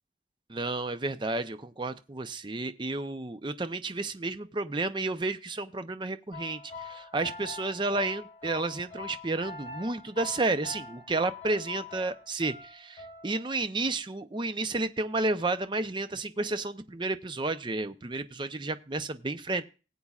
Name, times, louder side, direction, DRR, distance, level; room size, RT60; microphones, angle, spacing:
voice 1, 0.5-19.6, right 2 dB, 25° right, 10 dB, 0.6 m, -31 dB
sound 1, 6.3-13.6, left 4 dB, 40° left, 4.7 m, -43 dB
18.5 x 8.4 x 2.4 m, 0.33 s
head